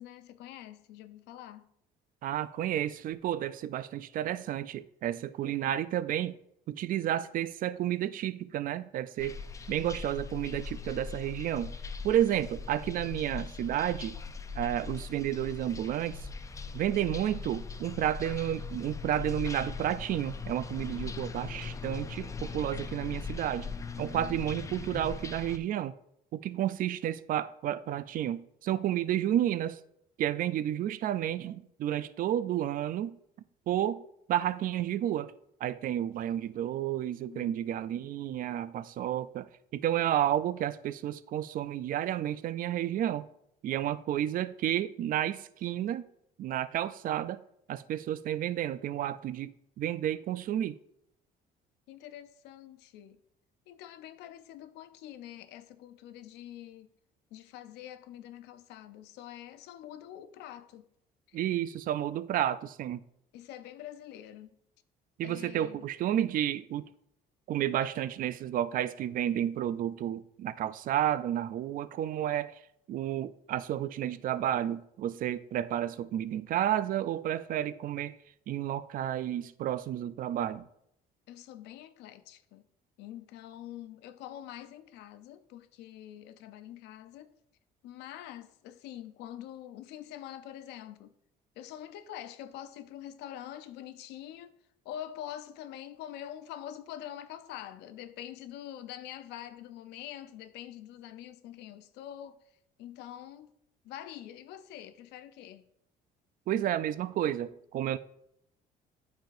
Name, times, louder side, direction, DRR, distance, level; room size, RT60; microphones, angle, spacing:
voice 1, 0.0-1.7 37.3-37.8 51.9-53.2 53.7-56.9 57.3-60.9 61.3-61.4 63.3-64.6 65.2-65.9 67.8-67.9 81.3-82.6 83.0-87.3 87.8-91.1 91.6-94.5 94.8-102.4 102.8-103.5 103.8-105.7, left 11 dB, 85° left, 0.5 m, -45 dB
voice 2, 2.2-6.4 6.7-9.4 9.7-11.7 12.0-14.2 14.5-16.3 16.7-23.7 24.0-25.9 26.3-29.8 30.2-33.2 33.7-34.0 34.3-35.3 35.6-43.3 43.6-46.0 46.4-47.4 47.7-50.8 61.3-63.0 65.2-66.9 67.5-72.6 72.9-78.1 78.5-80.7 106.5-108.0, right 11 dB, 55° right, 0.4 m, -31 dB
sound 1, 9.2-25.6, left 5 dB, 20° left, 0.4 m, -40 dB
11.5 x 4.4 x 2.6 m
cardioid pair, 110°, 17 cm